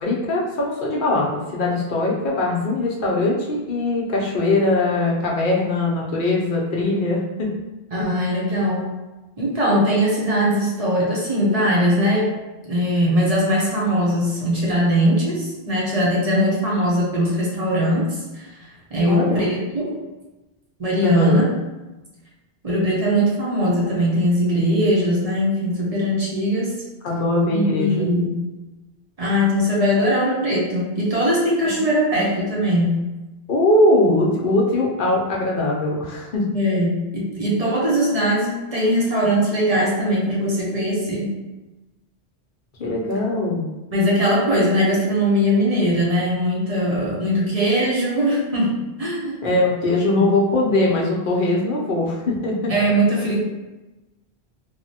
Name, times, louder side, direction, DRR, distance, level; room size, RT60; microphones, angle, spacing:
voice 1, 0.0-7.5 8.0-8.1 19.0-19.4 21.0-21.5 27.0-28.0 31.8-31.9 33.5-36.5 42.8-43.6 49.4-52.7, left 2 dB, 60° left, -3 dB, 0.7 m, -21 dB
voice 2, 7.9-8.9 9.4-12.3 12.7-20.0 20.8-21.4 22.6-26.7 27.5-28.4 29.2-33.0 36.5-41.3 43.9-49.6 50.2-50.3 52.7-53.4, equal, 40° right, -5 dB, 0.7 m, -20 dB
3.1 x 2.1 x 2.7 m, 1.1 s
omnidirectional pair, 1.1 m